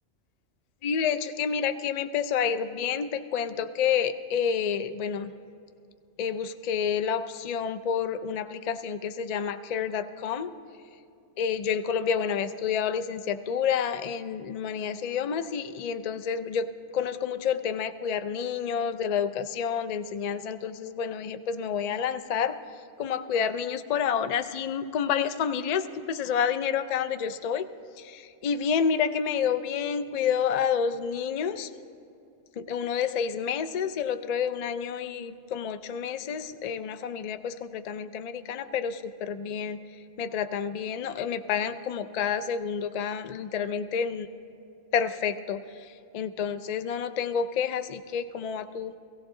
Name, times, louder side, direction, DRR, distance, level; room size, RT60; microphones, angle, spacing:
voice 1, 0.8-5.3 6.2-10.5 11.4-16.7 16.9-22.6 23.0-27.7 28.0-31.7 32.6-39.8 40.2-44.3 44.9-49.0, left 7 dB, 50° left, 10 dB, 0.5 m, -29 dB
16.5 x 15.5 x 3.7 m, 2.5 s
omnidirectional pair, 1.1 m